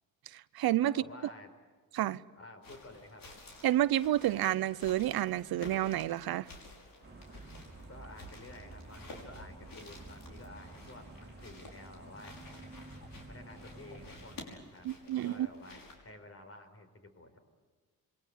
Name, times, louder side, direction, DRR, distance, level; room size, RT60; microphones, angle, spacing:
voice 1, 0.3-0.9 1.9-2.2 3.6-6.5 14.8-15.5, right 13 dB, 80° right, 0.7 m, -30 dB
voice 2, 0.8-1.5 2.4-3.2 7.9-12.4 13.3-17.4, left 2 dB, 40° left, 4.8 m, -52 dB
sound 1, 2.6-16.0, left 2 dB, 65° left, 5.9 m, -52 dB
sound 2, 7.0-14.4, right 2 dB, 25° right, 2.5 m, -51 dB
27.0 x 22.5 x 8.4 m
cardioid pair, 100°, 36 cm